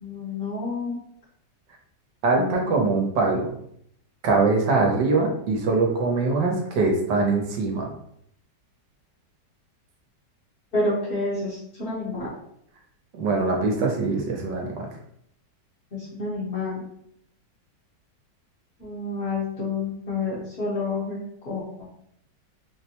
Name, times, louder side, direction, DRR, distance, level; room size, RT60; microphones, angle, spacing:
voice 1, 0.0-1.0 2.3-3.1 10.7-12.3 15.9-16.8 18.8-21.2 21.4-21.8, left 3 dB, 40° left, -10 dB, 1.1 m, -29 dB
voice 2, 2.2-3.5 4.2-7.9 13.1-14.7, right 3 dB, 80° right, 1 dB, 1.4 m, -22 dB
4.0 x 2.1 x 2.9 m, 0.71 s
omnidirectional pair, 1.9 m